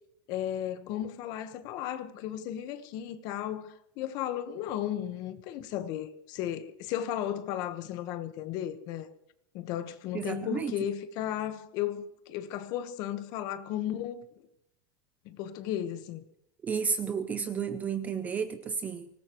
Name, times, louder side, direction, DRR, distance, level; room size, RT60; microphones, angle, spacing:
voice 1, 0.3-9.1 9.5-14.3 15.2-16.2, left 11 dB, 30° left, 1.3 m, -35 dB
voice 2, 10.1-10.7 16.6-19.1, right 6 dB, 10° right, 0.5 m, -32 dB
24.0 x 19.5 x 3.1 m
supercardioid pair, 180°, 13 cm